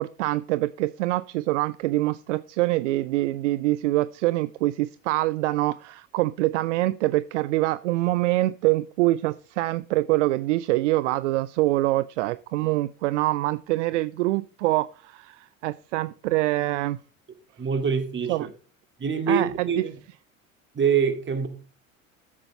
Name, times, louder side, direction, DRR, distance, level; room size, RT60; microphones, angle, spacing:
voice 1, 0.0-17.0 18.3-18.5 19.3-19.9, right 18 dB, 60° right, 0.6 m, -25 dB
voice 2, 17.6-18.5 19.0-19.9 20.8-21.5, right 6 dB, 30° right, 2.3 m, -24 dB
13.0 x 7.6 x 4.1 m
figure-of-eight pair, 65°, 40 cm